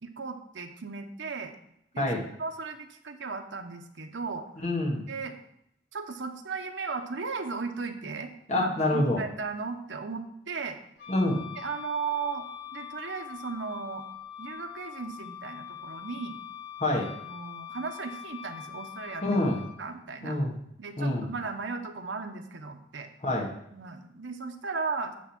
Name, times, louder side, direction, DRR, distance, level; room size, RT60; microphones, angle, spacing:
voice 1, 0.0-1.6 1.9-2.1 2.4-4.5 5.1-5.4 5.9-10.8 11.6-12.4 12.7-14.0 14.4-16.4 17.2-19.4 19.8-20.4 20.8-23.1 23.7-25.1, right 4 dB, 90° right, 5 dB, 0.8 m, -36 dB
voice 2, 2.0-2.3 4.6-5.0 8.5-9.2 11.1-11.4 16.8-17.1 19.2-19.6 20.2-20.5 21.0-21.3 23.2-23.5, left 1 dB, 40° left, -1 dB, 1.4 m, -26 dB
Wind instrument woodwind instrument, 11.0-19.8, left 9 dB, 70° left, 1.3 m, -43 dB
8.6 x 3.6 x 5.8 m, 0.77 s
head